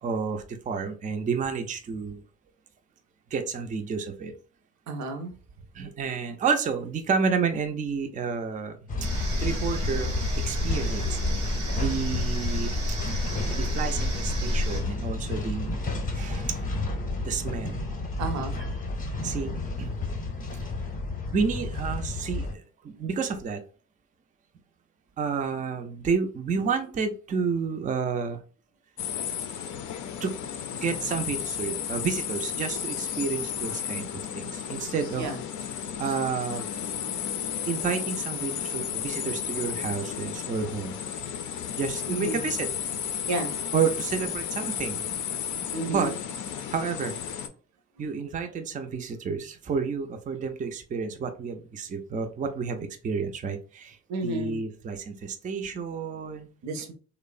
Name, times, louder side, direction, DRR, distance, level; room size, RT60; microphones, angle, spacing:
voice 1, 0.0-2.2 3.3-4.3 5.7-8.9 9.4-10.2 10.4-11.4 11.8-12.8 13.5-15.7 16.1-16.7 17.2-17.8 19.2-19.5 19.8-19.9 21.3-23.6 25.2-28.4 30.2-30.3 30.7-35.3 36.0-36.7 37.7-41.0 41.7-42.7 43.7-45.0 45.9-46.1 46.7-47.2 48.0-54.0 54.2-56.5, right 5 dB, 25° right, 6 dB, 0.4 m, -30 dB
voice 2, 4.9-5.3 17.1-17.2 18.2-18.6 35.2-35.4 42.1-42.5 43.3-43.5 45.7-46.2 54.1-54.6 56.6-56.9, right 3 dB, 65° right, 7 dB, 0.6 m, -31 dB
sound 1, 8.9-22.5, left 2 dB, 25° left, 0.6 m, -31 dB
sound 2, 9.0-14.8, equal, 85° right, 1.0 m, -31 dB
sound 3, 29.0-47.5, left 8 dB, 75° left, 0.4 m, -33 dB
2.9 x 2.0 x 2.4 m, 0.38 s
cardioid pair, 90°, 30 cm